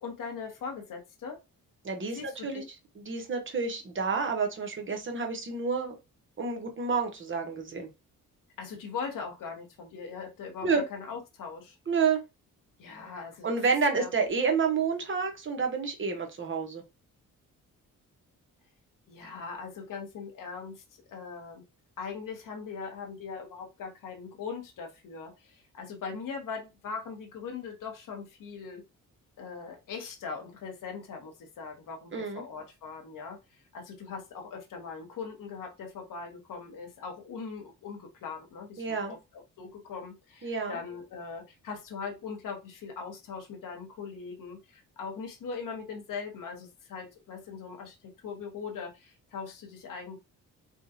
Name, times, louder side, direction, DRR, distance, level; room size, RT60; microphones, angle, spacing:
voice 1, 0.0-1.4 2.1-2.6 8.6-11.8 12.8-13.5 13.9-14.1 19.1-20.8 21.1-21.6 22.0-28.8 29.4-33.4 33.7-50.2, left 5 dB, 70° left, 2 dB, 1.1 m, -40 dB
voice 2, 1.8-2.6 2.9-5.9 6.4-7.9 10.6-10.8 11.9-12.2 13.4-16.8 32.1-32.4 38.8-39.1 40.4-40.8, right 5 dB, 35° right, 3 dB, 1.0 m, -29 dB
3.6 x 2.3 x 2.7 m, 0.25 s
cardioid pair, 85°, 34 cm